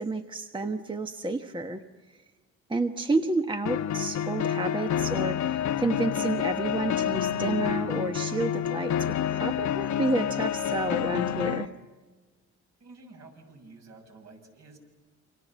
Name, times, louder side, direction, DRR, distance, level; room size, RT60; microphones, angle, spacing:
voice 1, 0.0-2.2 2.7-11.7, right 2 dB, 15° right, 6 dB, 1.2 m, -30 dB
sound 1, 3.7-11.7, left 10 dB, 70° left, 1.1 m, -28 dB
voice 2, 12.8-14.8, right 3 dB, 60° right, 2 dB, 7.3 m, -50 dB
29.0 x 25.5 x 7.4 m, 1.3 s
cardioid pair, 90°, 30 cm